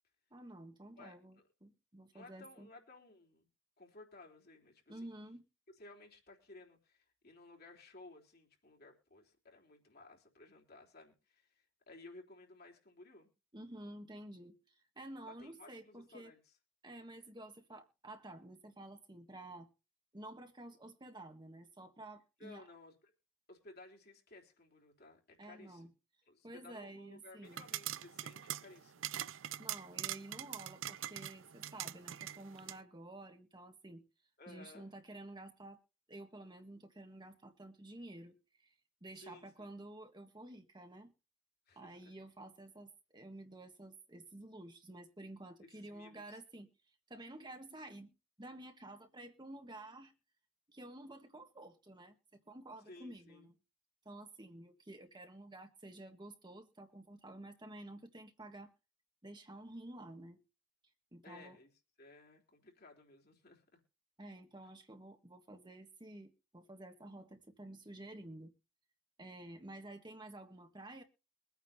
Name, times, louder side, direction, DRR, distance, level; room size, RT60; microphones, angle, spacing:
voice 1, 0.3-2.7 4.9-5.4 13.5-16.3 16.8-19.7 20.1-22.7 25.4-25.9 26.4-27.6 29.6-34.0 34.5-35.8 36.1-41.1 41.7-46.7 47.1-50.1 50.7-52.1 52.5-53.5 54.0-58.7 59.2-60.4 61.1-61.6 64.2-68.5 69.2-71.0, right 1 dB, 25° right, 1.5 m, -51 dB
voice 2, 2.1-3.5 3.8-5.1 5.8-13.3 15.3-16.5 22.4-23.1 23.5-25.9 26.3-29.1 34.4-34.9 39.2-39.8 41.7-42.1 45.6-46.4 52.9-53.5 61.2-61.7 62.0-63.8, left 2 dB, 55° left, 3.6 m, -57 dB
sound 1, 27.5-32.8, right 12 dB, 80° right, 0.5 m, -43 dB
23.0 x 9.2 x 2.8 m
head